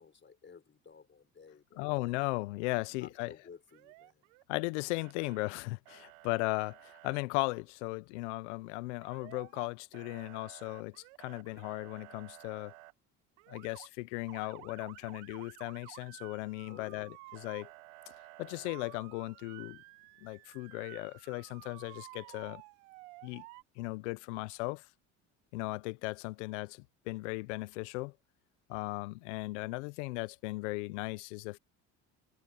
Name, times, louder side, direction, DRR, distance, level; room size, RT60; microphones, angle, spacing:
voice 1, 0.0-1.9 2.9-4.2 16.6-17.1, left 6 dB, 30° left, 4.7 m, -55 dB
voice 2, 1.8-3.3 4.5-12.7 13.5-17.7 18.4-19.8 20.2-22.6 23.2-23.4 23.8-24.9 25.5-28.1 28.7-31.6, left 24 dB, 85° left, 0.8 m, -37 dB
Motor vehicle (road) / Siren, 3.7-4.7 5.0-5.5 5.9-7.2 9.0-9.7 9.9-12.9 13.4-13.9 14.3-23.6, right 24 dB, 85° right, 1.2 m, -53 dB
supercardioid pair, 75°, 35 cm